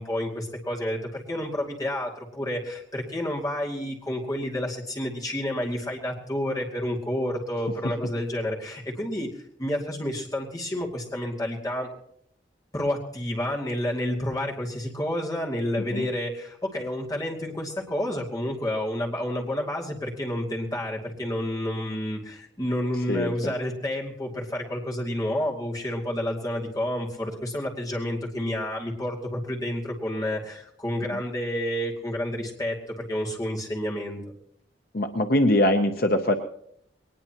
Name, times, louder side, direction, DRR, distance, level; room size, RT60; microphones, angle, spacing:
voice 1, 0.0-9.3 9.6-11.9 12.7-34.2, left 1 dB, 20° left, -2 dB, 2.4 m, -30 dB
voice 2, 23.1-23.5 31.1-31.2 34.9-36.4, left 1 dB, 50° left, 5 dB, 0.8 m, -23 dB
21.0 x 19.5 x 3.0 m, 0.71 s
head